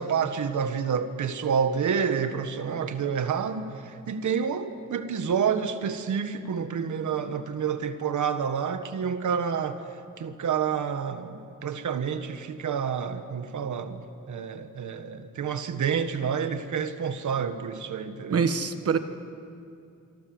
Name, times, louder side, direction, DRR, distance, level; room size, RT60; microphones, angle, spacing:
voice 1, 0.0-9.8 10.2-14.0 14.3-18.4, right 7 dB, 65° right, 9 dB, 1.5 m, -29 dB
voice 2, 18.3-19.0, right 6 dB, 45° right, 9 dB, 1.3 m, -24 dB
26.5 x 24.5 x 7.9 m, 2.5 s
wide cardioid pair, 180°, 32 cm